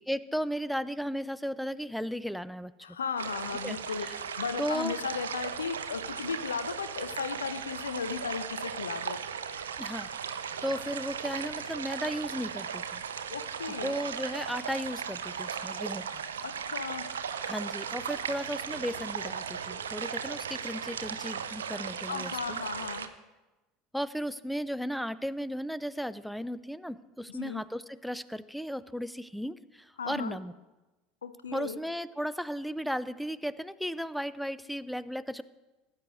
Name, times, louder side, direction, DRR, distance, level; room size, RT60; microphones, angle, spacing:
voice 1, 0.1-2.7 3.6-4.1 4.6-5.0 9.8-13.0 13.8-16.2 17.4-22.6 23.9-30.5 31.5-35.4, equal, ahead, 16 dB, 0.4 m, -35 dB
voice 2, 2.8-9.2 13.3-14.0 16.4-17.1 22.1-23.1 27.3-27.6 30.0-30.4 31.2-31.8, left 6 dB, 75° left, 11 dB, 0.6 m, -36 dB
sound 1, 3.2-23.1, right 7 dB, 70° right, 0.5 m, -37 dB
17.5 x 9.3 x 2.5 m, 1.1 s
figure-of-eight pair, 75°, 0 cm